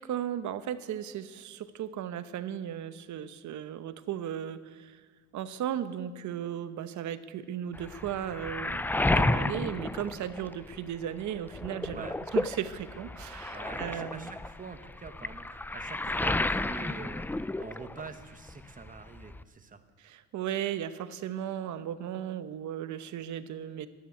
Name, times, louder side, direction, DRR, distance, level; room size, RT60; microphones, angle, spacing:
voice 1, 0.0-5.0 5.3-12.1 12.3-14.3 20.0-23.9, right 10 dB, 70° right, 12 dB, 0.9 m, -36 dB
Waves surf, 7.7-11.0 11.3-18.2 18.5-19.4, left 2 dB, 5° left, 0.3 m, -32 dB
voice 2, 13.5-17.3 17.6-19.8, right 4 dB, 25° right, 7 dB, 1.2 m, -45 dB
12.5 x 10.5 x 9.5 m, 1.5 s
cardioid pair, 90°, 30 cm